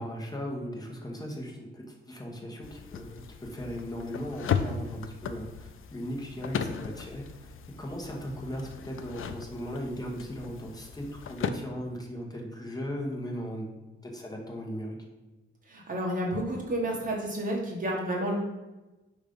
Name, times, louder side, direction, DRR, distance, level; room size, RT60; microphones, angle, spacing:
voice 1, 0.0-13.7 14.0-15.0, equal, 20° left, -1 dB, 1.2 m, -38 dB
sound 1, 2.6-11.5, left 7 dB, 85° left, 0.5 m, -36 dB
voice 2, 15.7-18.4, right 1 dB, 40° right, -2 dB, 1.6 m, -30 dB
5.4 x 3.8 x 5.2 m, 1.1 s
wide cardioid pair, 145°, 21 cm